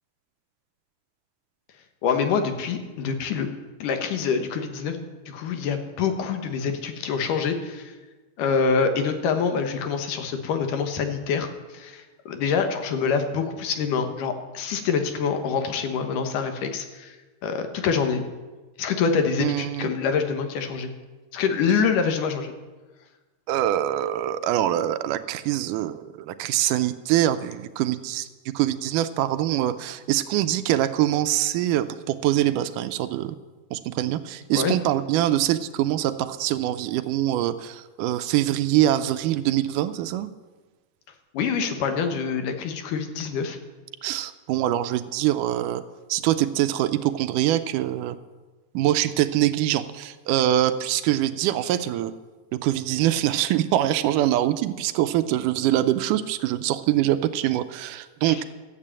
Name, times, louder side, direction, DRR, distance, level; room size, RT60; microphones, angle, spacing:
voice 1, 2.0-3.5 3.8-7.9 8.4-11.5 11.7-17.2 17.4-18.2 18.8-20.9 21.3-22.5 34.6-34.8 41.3-43.6 58.2-58.4, left 6 dB, 85° left, 6 dB, 2.8 m, -25 dB
voice 2, 19.4-19.9 23.5-28.3 28.6-33.4 33.7-40.3 44.0-45.8 46.1-48.2 48.7-52.1 52.6-58.4, right 13 dB, 90° right, 12 dB, 2.2 m, -24 dB
14.0 x 7.5 x 8.7 m, 1.3 s
omnidirectional pair, 3.7 m